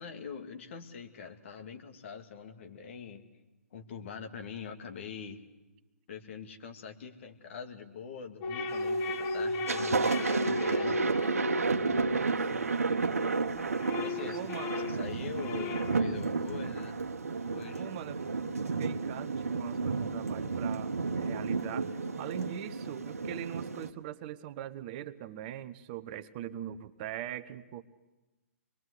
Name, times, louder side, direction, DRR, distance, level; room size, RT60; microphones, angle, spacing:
voice 1, 0.0-3.2 3.7-5.4 6.1-11.4 14.0-17.0 17.5-17.9, left 6 dB, 55° left, 5 dB, 2.4 m, -44 dB
sound 1, 8.4-13.1 13.5-16.2, left 2 dB, 30° left, 1.5 m, -34 dB
Thunder, 8.7-9.1 9.5-23.9, right 4 dB, 80° right, 1.3 m, -32 dB
voice 2, 12.1-12.8 14.3-14.7 17.8-18.3 18.6-27.8, right 12 dB, 35° right, 11 dB, 1.0 m, -42 dB
25.5 x 21.5 x 8.3 m, 1.1 s
figure-of-eight pair, 125°, 8 cm